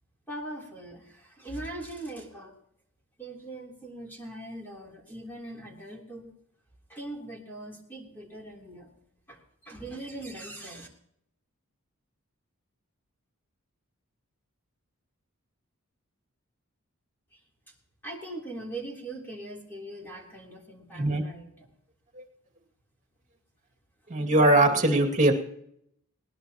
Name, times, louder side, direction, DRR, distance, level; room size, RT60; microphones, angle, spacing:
voice 1, 0.3-2.5 3.2-6.3 6.9-8.9 9.3-10.9 17.3-17.4 18.0-21.5, right 1 dB, 10° left, -2 dB, 3.5 m, -41 dB
voice 2, 24.1-25.3, right 2 dB, 35° right, 4 dB, 2.3 m, -21 dB
20.0 x 19.0 x 3.0 m, 0.72 s
head